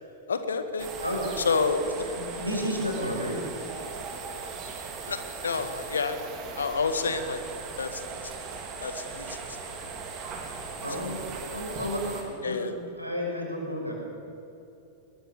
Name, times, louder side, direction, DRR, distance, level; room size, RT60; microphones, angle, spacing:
voice 1, 0.3-0.9 1.5-1.8 5.1-5.2 5.4-6.3 6.6-7.4 7.8-8.0 8.8-9.4 12.4-12.7, left 4 dB, 70° left, 9 dB, 1.9 m, -28 dB
sound 1, 0.8-12.2, right 4 dB, 35° right, 4.2 m, -38 dB
voice 2, 1.0-1.4 1.8-3.5 10.8-11.2 11.5-13.9, equal, 90° right, -1 dB, 6.1 m, -32 dB
21.5 x 21.0 x 7.1 m, 2.8 s
figure-of-eight pair, 90°, 0 cm